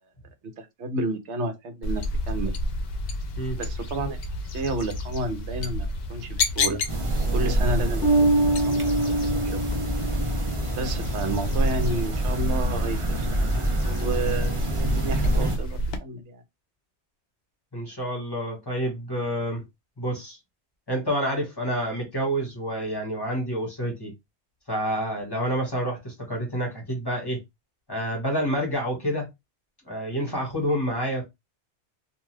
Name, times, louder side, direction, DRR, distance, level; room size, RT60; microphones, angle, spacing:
voice 1, 0.6-2.5 3.6-4.2 4.5-6.8 7.3-8.3 8.7-9.6 10.7-16.4, right 2 dB, 75° right, 1.0 m, -31 dB
sound 1, 1.8-16.0, left 1 dB, 65° left, 0.7 m, -29 dB
sound 2, 6.9-15.6, right 1 dB, 35° right, 0.5 m, -28 dB
Bass guitar, 8.0-10.7, right 2 dB, 10° right, 1.0 m, -24 dB
voice 2, 17.7-19.6 20.0-20.4 20.9-24.1 24.7-27.4 27.9-29.3 29.9-31.3, equal, 20° left, 1.2 m, -28 dB
2.5 x 2.3 x 3.2 m
omnidirectional pair, 1.2 m